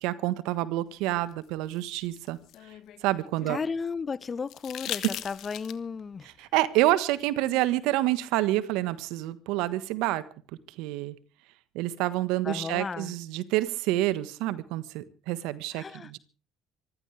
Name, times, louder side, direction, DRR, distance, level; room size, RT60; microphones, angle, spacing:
voice 1, 0.0-2.4 3.0-3.6 6.4-10.2 10.8-11.1 11.7-16.2, right 16 dB, 75° right, 1.4 m, -28 dB
sound 1, 1.3-3.6 4.5-6.0 7.7-7.8, left 13 dB, 65° left, 1.4 m, -39 dB
voice 2, 3.5-6.3 12.4-13.1 15.7-16.1, left 5 dB, 35° left, 1.0 m, -34 dB
25.0 x 15.0 x 3.4 m
hypercardioid pair, 65°, 0 cm